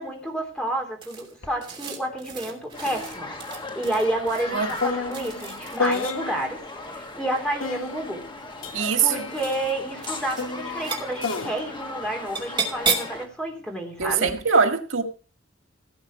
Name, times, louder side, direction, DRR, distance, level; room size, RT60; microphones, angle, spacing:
voice 1, 0.0-3.4 3.7-6.6 6.9-8.2 9.0-14.3, right 1 dB, 5° left, 3.5 m, -30 dB
sound 1, 1.0-6.0 7.2-7.9 8.6-9.0 9.3-9.7 10.0-10.5 10.7-11.4 12.4-13.2, right 5 dB, 25° right, 2.9 m, -33 dB
sound 2, 1.4-1.6 1.9-6.7 7.6-13.1 14.0-14.4, left 4 dB, 90° left, 1.7 m, -33 dB
sound 3, 2.7-13.3, left 2 dB, 25° left, 1.4 m, -37 dB
voice 2, 8.7-9.1 14.0-15.0, right 5 dB, 85° right, 1.7 m, -22 dB
17.0 x 8.0 x 4.8 m
head